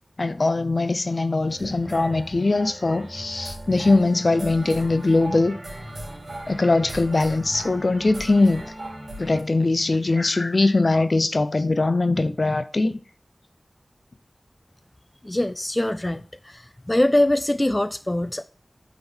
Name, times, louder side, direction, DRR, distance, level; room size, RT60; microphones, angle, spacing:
voice 1, 0.2-5.6 6.5-8.6 9.2-13.0, left 2 dB, 60° left, 0.7 m, -21 dB
sound 1, 1.5-9.4, right 1 dB, 80° right, 2.3 m, -37 dB
voice 2, 15.2-16.2 16.9-18.4, left 1 dB, 25° left, 0.4 m, -22 dB
8.9 x 3.8 x 6.2 m
wide cardioid pair, 45°, 0 cm